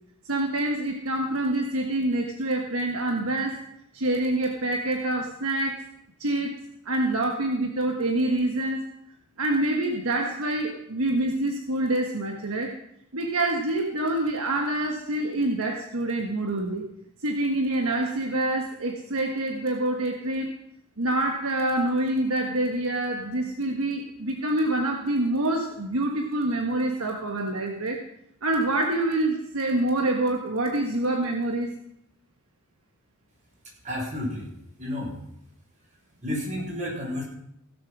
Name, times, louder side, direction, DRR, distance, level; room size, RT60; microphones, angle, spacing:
voice 1, 0.3-3.6 3.9-5.9 6.2-6.6 6.8-8.8 9.4-12.7 13.1-16.9 17.2-20.5 21.0-28.0 28.4-31.7, right 1 dB, 70° right, 2 dB, 1.4 m, -26 dB
voice 2, 33.8-34.5 34.8-35.1 36.2-37.2, left 1 dB, 35° right, -3 dB, 5.4 m, -31 dB
16.5 x 7.2 x 6.1 m, 0.78 s
head